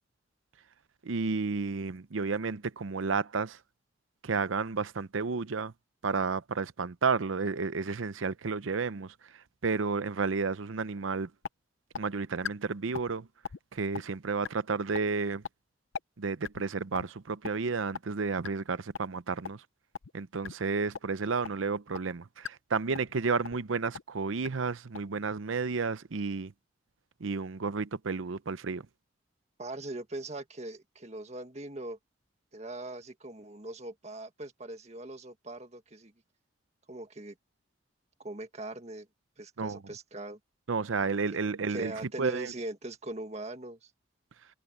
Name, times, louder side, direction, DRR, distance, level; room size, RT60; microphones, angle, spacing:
voice 1, 1.0-3.6 4.2-5.7 6.0-11.3 12.0-13.3 13.7-15.4 16.2-19.6 20.1-26.5 27.2-28.9 39.6-39.8 40.7-42.5, right 4 dB, 85° right, 0.7 m, -32 dB
sound 1, 11.0-11.1 11.4-11.5 11.9-12.0 12.4-12.5 12.9-13.1 13.4-13.6 13.9-14.0 14.4-14.5 14.9-15.0 15.4-15.5 15.9-16.0 16.4-16.6 16.9-17.1 17.4-17.5 17.9-18.0 18.4-18.5 18.9-19.0 19.4-19.5 19.9-20.1 20.4-20.5 20.9-21.0 21.4-21.5 21.9-22.0 22.4-22.5 22.9-23.1 23.4-23.6 23.9-24.0 24.4-24.5 24.9-25.0, left 7 dB, 85° left, 0.6 m, -37 dB
voice 2, 29.6-32.0 32.5-36.1 36.9-37.3 38.2-39.1 39.4-40.4 41.7-43.9, right 2 dB, 35° right, 1.8 m, -41 dB
head